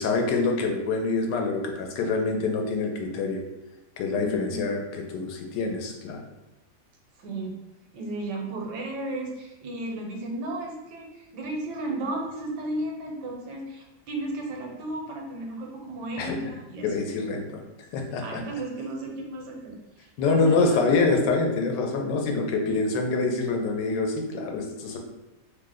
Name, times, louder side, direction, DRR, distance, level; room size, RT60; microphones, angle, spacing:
voice 1, 0.0-3.4 4.0-6.2 16.2-16.3 16.8-17.6 17.9-18.4 20.2-25.0, left 3 dB, 90° left, 2 dB, 1.2 m, -26 dB
voice 2, 4.1-4.7 7.2-7.6 7.9-17.0 18.2-20.8, right 1 dB, 80° right, 1 dB, 1.2 m, -34 dB
3.0 x 2.0 x 3.6 m, 1.0 s
omnidirectional pair, 1.8 m